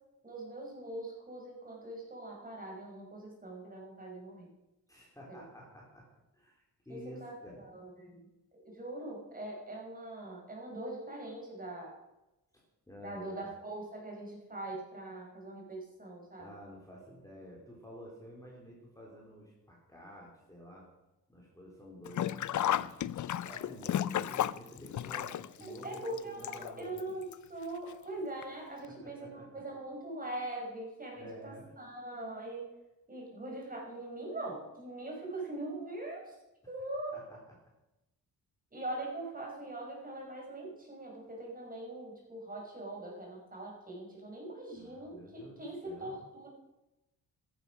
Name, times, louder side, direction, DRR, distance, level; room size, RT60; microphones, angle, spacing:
voice 1, 0.2-4.5 5.3-5.4 6.9-12.0 13.0-16.5 25.6-32.7 33.1-36.4 36.7-37.3 38.7-46.5, right 2 dB, 20° right, -1 dB, 5.4 m, -42 dB
voice 2, 4.9-6.0 6.3-7.6 12.5-13.5 16.4-20.9 21.3-23.0 23.4-27.1 29.0-29.6 31.2-31.6 37.1-37.4 44.7-46.2, equal, 10° left, -3 dB, 3.5 m, -51 dB
Sink (filling or washing), 22.0-27.0 27.3-27.4 28.4-28.5 28.8-28.9, left 11 dB, 50° left, 0.5 m, -33 dB
14.0 x 11.0 x 6.2 m, 0.97 s
cardioid pair, 120°, 38 cm